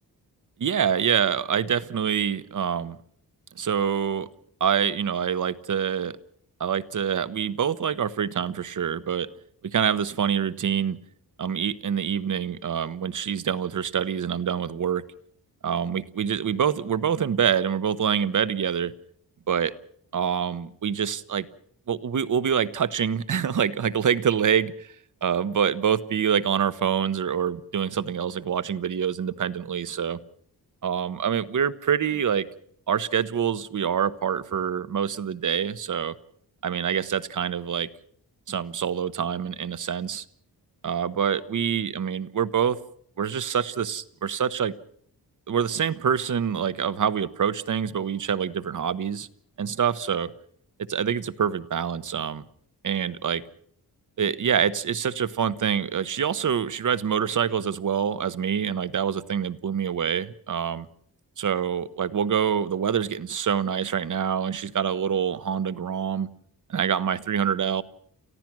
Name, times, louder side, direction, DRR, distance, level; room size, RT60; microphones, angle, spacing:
voice 1, 0.6-3.0 3.6-4.3 4.6-6.2 6.6-9.3 9.6-11.0 11.4-15.0 15.6-18.9 19.5-19.7 20.1-21.5 21.9-24.9 25.2-30.2 30.8-32.5 32.9-36.1 36.6-37.9 38.5-40.2 40.8-42.8 43.2-44.7 45.5-49.3 49.6-50.3 50.9-52.4 52.8-53.4 54.2-60.9 61.4-66.3 66.7-67.8, right 8 dB, 50° right, 15 dB, 1.0 m, -26 dB
29.0 x 15.0 x 6.1 m, 0.62 s
wide cardioid pair, 140°, 39 cm